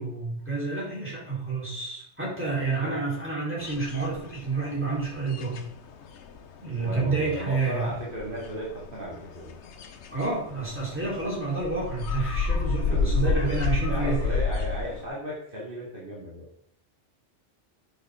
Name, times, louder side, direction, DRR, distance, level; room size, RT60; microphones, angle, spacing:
voice 1, 0.0-5.6 6.6-7.9 10.1-14.4, right 3 dB, 10° right, -6 dB, 4.2 m, -29 dB
sound 1, 3.6-4.8 5.0-15.0, left 4 dB, 75° left, 1.1 m, -30 dB
voice 2, 6.8-9.5 12.7-13.6 13.9-16.5, equal, 50° right, -6 dB, 2.8 m, -35 dB
10.0 x 6.8 x 3.8 m, 0.65 s
omnidirectional pair, 1.2 m